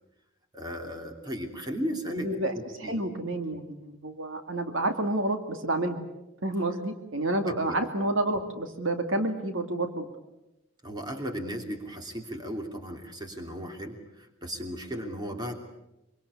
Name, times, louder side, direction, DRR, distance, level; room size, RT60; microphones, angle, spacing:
voice 1, 0.5-3.0 7.4-7.8 10.8-15.5, equal, 20° right, 4 dB, 3.0 m, -36 dB
voice 2, 2.1-2.5 2.8-6.0 6.4-10.1, right 2 dB, 70° right, 6 dB, 2.3 m, -29 dB
24.5 x 24.5 x 8.4 m, 0.93 s
head